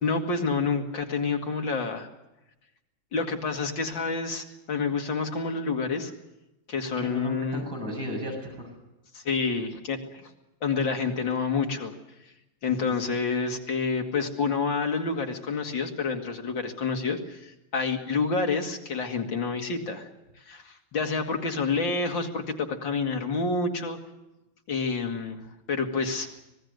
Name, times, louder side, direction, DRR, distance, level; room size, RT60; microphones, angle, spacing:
voice 1, 0.0-2.1 3.1-6.1 6.7-7.6 9.1-10.3 10.6-11.9 12.6-20.1 20.5-24.0 24.7-25.4 25.7-26.3, left 4 dB, 70° left, 3 dB, 3.0 m, -28 dB
voice 2, 7.0-8.7 12.7-13.0, equal, 75° right, 1 dB, 8.4 m, -35 dB
26.0 x 19.5 x 6.6 m, 0.98 s
omnidirectional pair, 2.1 m